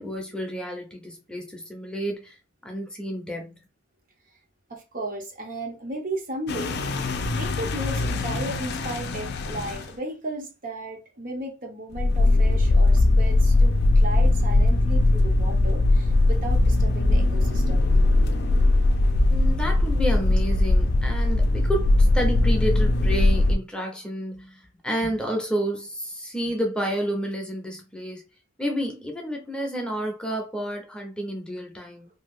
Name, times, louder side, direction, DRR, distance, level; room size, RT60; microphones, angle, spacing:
voice 1, 0.0-2.4 2.6-3.6 19.3-28.2 28.6-32.1, equal, 5° left, 0.6 m, -30 dB
voice 2, 4.7-6.8 7.3-17.9, right 1 dB, 40° right, 0.7 m, -35 dB
sound 1, 6.5-9.9 11.9-23.6, left 2 dB, 55° left, 0.4 m, -20 dB
2.7 x 2.3 x 3.6 m
head